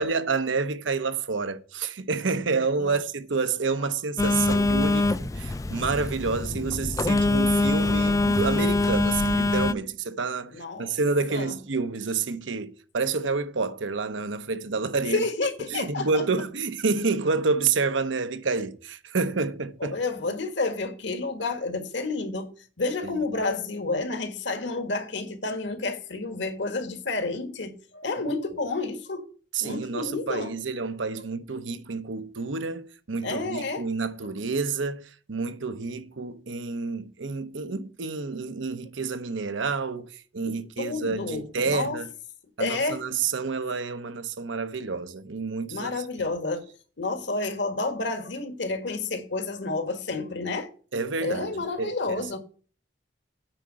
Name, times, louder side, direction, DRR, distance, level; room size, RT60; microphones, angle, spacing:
voice 1, 0.0-15.2 15.7-20.0 23.0-23.2 29.5-42.1 42.6-46.0 50.9-52.4, right 4 dB, 80° right, 0.9 m, -29 dB
Telephone, 4.2-9.7, left 2 dB, 20° left, 0.3 m, -24 dB
voice 2, 10.5-10.9 11.3-11.5 15.1-16.2 19.8-22.5 22.8-29.2 29.6-30.5 33.2-33.9 40.4-42.0 42.6-43.0 45.7-46.7 47.0-50.7 51.2-52.4, left 3 dB, 70° left, 1.7 m, -30 dB
9.0 x 4.7 x 7.4 m
head